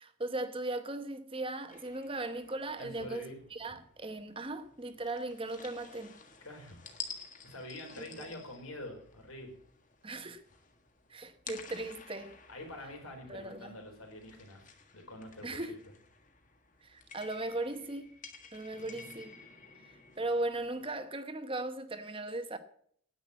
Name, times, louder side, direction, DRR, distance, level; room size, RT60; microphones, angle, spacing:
voice 1, 0.0-6.1 8.0-8.3 10.0-10.4 11.1-12.3 13.3-13.7 15.4-15.7 16.8-18.1 18.5-19.4 19.8-22.6, right 2 dB, 25° right, 0.9 m, -38 dB
sound 1, 1.7-21.0, left 6 dB, 35° left, 1.6 m, -52 dB
voice 2, 2.8-3.8 6.4-6.8 7.4-9.5 12.5-15.8, left 1 dB, 90° left, 4.2 m, -46 dB
10.0 x 8.5 x 8.1 m
head